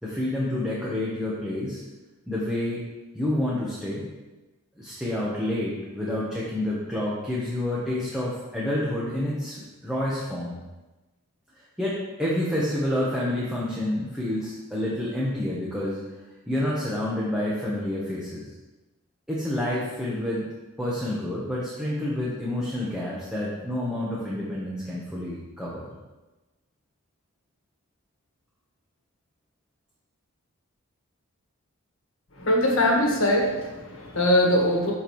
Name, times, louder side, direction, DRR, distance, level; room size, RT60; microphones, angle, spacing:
voice 1, 0.0-1.8 2.3-2.8 3.1-4.1 4.8-10.6 11.5-16.0 16.5-18.5 19.3-20.5 20.8-25.9, left 1 dB, 5° right, -7 dB, 1.1 m, -28 dB
voice 2, 32.4-34.9, left 1 dB, 65° left, 0 dB, 1.5 m, -22 dB
12.5 x 4.5 x 3.2 m, 1.1 s
head